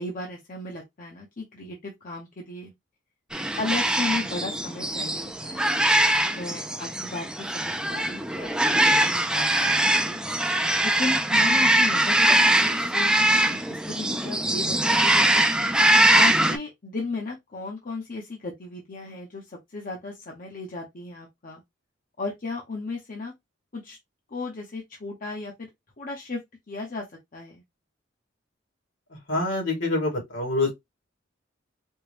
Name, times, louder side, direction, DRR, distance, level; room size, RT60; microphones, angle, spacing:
voice 1, 0.0-2.7 3.6-5.7 6.3-10.2 10.8-13.1 13.4-15.5 16.1-21.6 22.2-23.3 23.7-24.0 24.3-25.7 26.0-26.4 26.7-27.0 27.3-27.6, left 3 dB, 45° left, 0.8 m, -35 dB
sound 1, 3.3-16.6, right 1 dB, 5° right, 0.4 m, -22 dB
voice 2, 29.3-30.7, left 2 dB, 70° left, 2.3 m, -25 dB
4.4 x 2.2 x 3.2 m
head